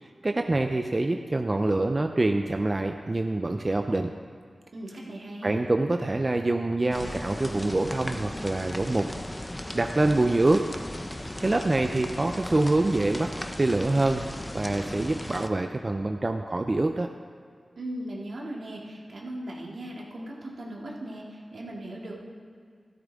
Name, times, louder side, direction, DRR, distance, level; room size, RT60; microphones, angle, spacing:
voice 1, 0.0-4.1 5.4-9.1 9.7-10.6 11.4-13.3 13.6-14.2 14.5-17.1, right 2 dB, 35° right, 5 dB, 0.6 m, -25 dB
voice 2, 4.7-5.7 17.8-22.2, right 1 dB, 80° right, -4 dB, 2.6 m, -38 dB
sound 1, 6.9-15.5, left 1 dB, 15° left, 0.8 m, -37 dB
14.0 x 13.0 x 3.7 m, 2.2 s
wide cardioid pair, 60°, 0 cm